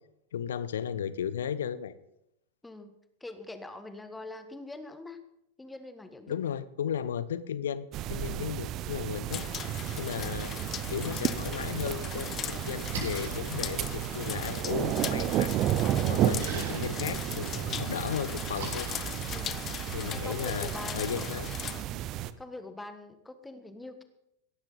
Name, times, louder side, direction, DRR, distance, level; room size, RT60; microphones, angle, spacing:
voice 1, 0.3-1.9 6.3-10.5 10.9-15.5 16.1-18.9 19.9-21.5, left 8 dB, 65° left, 16 dB, 0.8 m, -35 dB
voice 2, 2.6-2.9 3.2-5.2 5.6-6.4 8.3-8.6 19.3-19.6 20.1-21.3 21.9-22.0 22.4-24.0, left 2 dB, 5° left, 9 dB, 1.4 m, -44 dB
sound 1, 7.9-22.3, right 12 dB, 35° right, 0.7 m, -32 dB
sound 2, 9.3-21.8, left 10 dB, 30° left, 0.6 m, -39 dB
Splash splatter, 12.7-20.0, right 1 dB, 55° right, 6.4 m, -44 dB
17.0 x 13.0 x 4.0 m, 0.82 s
figure-of-eight pair, 90°, 0 cm